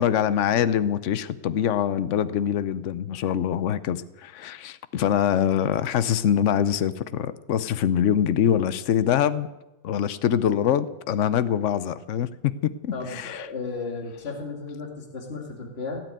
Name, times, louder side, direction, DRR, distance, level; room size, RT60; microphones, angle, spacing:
voice 1, 0.0-9.5 9.8-13.5, left 9 dB, 70° left, 15 dB, 0.7 m, -24 dB
voice 2, 12.9-16.0, left 4 dB, 30° left, 2 dB, 2.6 m, -34 dB
17.0 x 9.0 x 9.2 m, 1.0 s
omnidirectional pair, 2.1 m